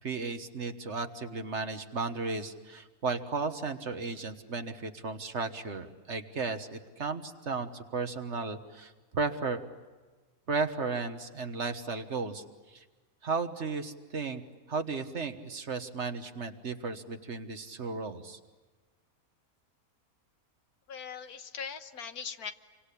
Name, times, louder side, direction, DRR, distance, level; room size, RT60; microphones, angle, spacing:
voice 1, 0.0-9.6 10.5-12.4 12.7-12.8 13.2-14.4 14.7-18.4, right 4 dB, 50° right, 8 dB, 1.6 m, -34 dB
voice 2, 20.9-22.5, left 6 dB, 85° left, 9 dB, 1.7 m, -40 dB
28.0 x 24.5 x 8.5 m, 1.3 s
omnidirectional pair, 1.5 m